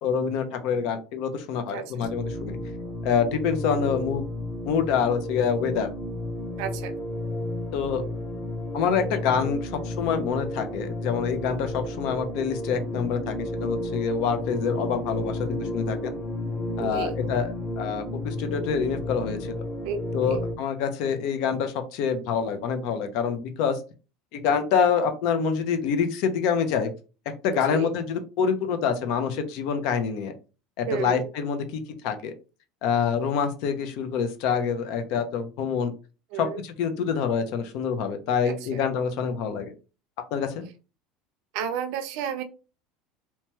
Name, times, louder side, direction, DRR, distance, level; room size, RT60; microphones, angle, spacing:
voice 1, 0.0-2.6 3.0-4.2 4.7-5.9 7.7-8.1 8.7-16.1 16.8-17.5 17.8-19.6 20.1-23.8 24.3-26.9 27.4-30.3 30.8-32.3 32.8-35.9 36.4-39.7 40.3-40.6, left 6 dB, 65° left, 8 dB, 0.5 m, -26 dB
voice 2, 1.7-2.1 6.6-6.9 16.8-17.2 19.8-20.4 27.5-27.9 30.9-31.3 36.3-36.6 38.5-38.8 41.5-42.4, right 7 dB, 70° right, 9 dB, 0.5 m, -32 dB
sound 1, 2.0-20.5, left 1 dB, 30° left, 0.8 m, -32 dB
2.8 x 2.2 x 2.9 m, 0.34 s
supercardioid pair, 140°, 0 cm